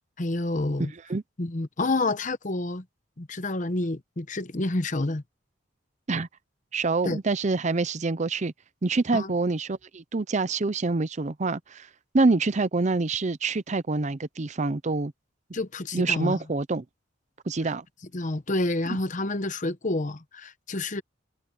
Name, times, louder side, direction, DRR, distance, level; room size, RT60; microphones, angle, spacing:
voice 1, 0.2-0.9 1.4-2.8 3.2-5.2 7.0-7.2 9.1-9.3 15.5-16.4 18.1-21.0, left 2 dB, 40° left, 0.9 m, -28 dB
voice 2, 6.7-8.5 8.8-11.9 12.1-15.1 15.9-16.8 17.5-17.8, right 3 dB, 35° right, 0.6 m, -26 dB
head